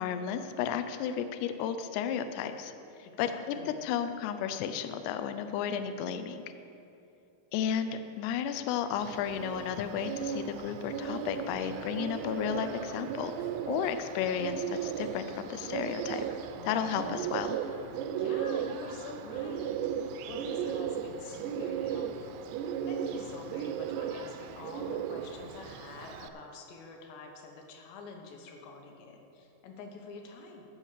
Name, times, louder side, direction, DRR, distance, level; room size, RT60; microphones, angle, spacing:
voice 1, 0.0-2.7 3.2-6.4 7.5-13.3 13.7-16.2 16.7-17.6, left 8 dB, 90° left, 9 dB, 2.3 m, -33 dB
voice 2, 3.1-3.9 13.9-14.2 16.6-17.4 18.2-30.7, left 4 dB, 70° left, 2 dB, 3.2 m, -47 dB
Bird, 9.0-26.3, right 8 dB, 90° right, 2.4 m, -36 dB
13.5 x 6.3 x 7.4 m, 2.7 s
omnidirectional pair, 5.4 m